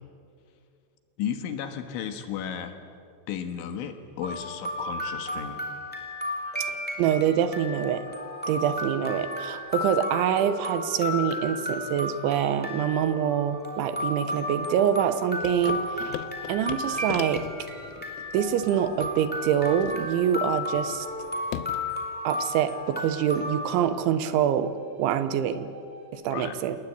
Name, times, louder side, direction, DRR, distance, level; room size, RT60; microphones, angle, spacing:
voice 1, 1.2-2.7 3.3-5.7 26.3-26.6, left 8 dB, 70° left, 7 dB, 3.6 m, -34 dB
sound 1, 4.2-23.9, left 2 dB, 5° left, 1.4 m, -34 dB
sound 2, 6.4-26.1, right 2 dB, 25° right, 5.9 m, -49 dB
voice 2, 7.0-8.0 8.5-16.2 16.5-17.4 18.3-21.1 22.2-25.7 26.1-26.8, right 9 dB, 75° right, 11 dB, 3.2 m, -25 dB
sound 3, 15.4-22.0, left 10 dB, 90° left, 3.7 m, -40 dB
28.0 x 19.5 x 8.6 m, 2.4 s
omnidirectional pair, 5.9 m